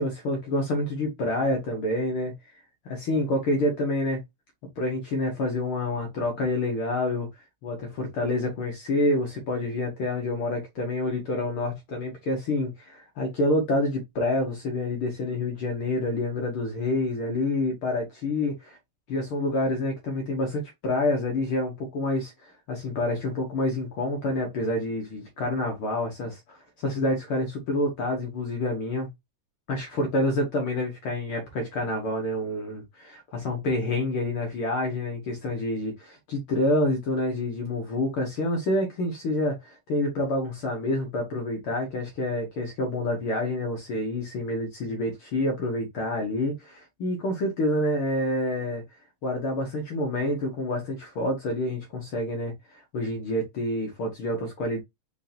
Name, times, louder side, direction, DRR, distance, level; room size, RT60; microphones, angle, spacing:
voice 1, 0.0-2.3 2.8-4.2 4.8-18.8 19.1-29.1 29.7-48.8 49.2-54.8, left 1 dB, 60° left, 1.5 m, -28 dB
5.2 x 3.6 x 2.7 m
omnidirectional pair, 3.5 m